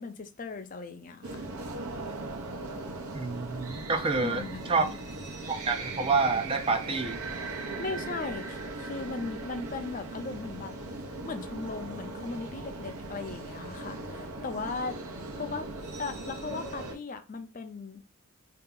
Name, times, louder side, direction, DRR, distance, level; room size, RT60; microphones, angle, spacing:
voice 1, 0.0-1.5 4.1-4.9 7.8-10.7 11.2-15.0 15.4-15.7 16.0-18.0, left 4 dB, 35° left, 0.4 m, -38 dB
sound 1, 1.2-17.0, right 2 dB, 85° right, 0.9 m, -39 dB
voice 2, 3.1-4.9 5.5-7.2, right 4 dB, 25° right, 0.4 m, -28 dB
3.4 x 2.9 x 3.7 m
head